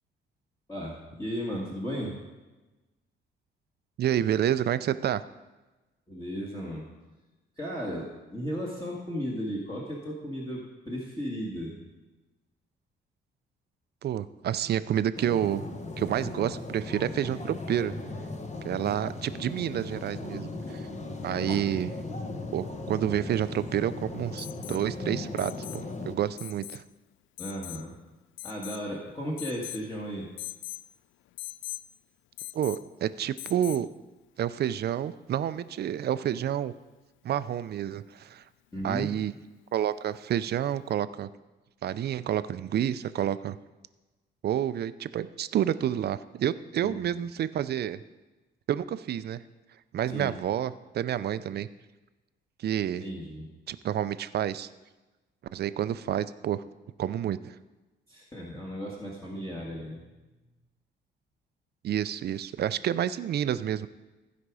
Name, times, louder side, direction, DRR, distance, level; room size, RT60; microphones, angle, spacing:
voice 1, 0.7-2.2 6.1-6.9 7.6-11.8 21.3-21.6 27.4-27.9 28.4-30.3 38.7-39.1 46.8-47.1 50.1-50.3 53.0-53.5 58.1-60.0, equal, 15° left, -5 dB, 1.9 m, -35 dB
voice 2, 4.0-5.2 14.0-15.6 16.0-18.0 18.6-20.9 21.2-21.9 22.5-26.8 32.5-33.9 34.4-36.7 37.2-38.4 38.8-39.3 39.7-41.3 41.8-43.6 44.4-48.0 48.7-49.4 49.9-51.7 52.6-53.0 53.7-54.7 55.5-56.6 57.0-57.6 61.8-63.9, right 10 dB, 55° right, 14 dB, 0.5 m, -29 dB
sound 1, 15.2-26.2, left 2 dB, 35° left, 1.2 m, -38 dB
Alarm, 24.4-24.8 25.4-25.8 26.4-26.8 27.4-27.8 28.4-28.9 29.4-29.9 30.4-30.8 31.4-31.8 32.4-32.9 33.4-33.9 35.6-35.7, left 18 dB, 75° left, 0.4 m, -41 dB
15.5 x 5.2 x 4.8 m, 1.1 s
cardioid pair, 90°, 20 cm